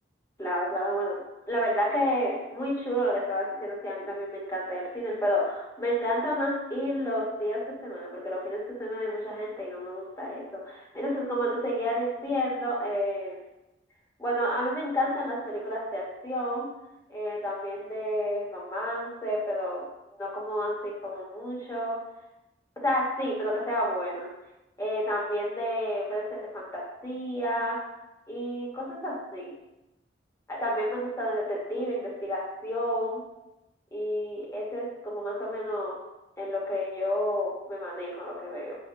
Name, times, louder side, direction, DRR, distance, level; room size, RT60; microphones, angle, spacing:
voice 1, 0.4-1.2 1.5-13.4 14.2-16.7 17.1-19.9 20.2-22.0 22.8-24.3 24.8-27.8 28.3-29.5 30.5-33.2 33.9-36.0 36.4-38.8, equal, 20° left, -4 dB, 0.8 m, -30 dB
4.9 x 2.1 x 2.6 m, 0.94 s
head